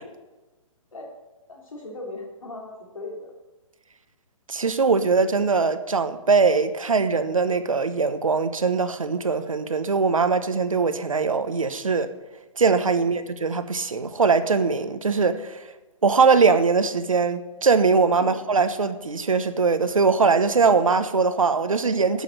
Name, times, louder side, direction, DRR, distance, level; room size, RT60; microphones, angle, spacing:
voice 1, 1.5-3.3 12.9-13.1 18.2-18.4, left 2 dB, 85° left, 3.5 m, -38 dB
voice 2, 4.5-12.1 12.6-15.7 16.0-22.2, right 4 dB, 90° right, 1.0 m, -21 dB
11.5 x 6.9 x 6.5 m
hypercardioid pair, 135°, 17 cm